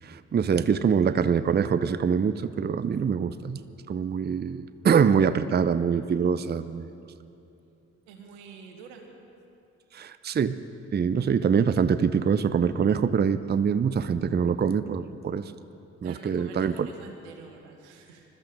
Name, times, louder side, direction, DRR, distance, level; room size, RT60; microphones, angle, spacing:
voice 1, 0.0-3.6 3.9-6.9 9.9-10.6 10.9-15.5 16.0-16.9, right 6 dB, 30° right, 13 dB, 0.6 m, -24 dB
voice 2, 8.1-9.1 16.0-18.2, right 5 dB, 85° right, 3 dB, 1.6 m, -47 dB
21.0 x 13.0 x 5.2 m, 2.7 s
hypercardioid pair, 40°, 35 cm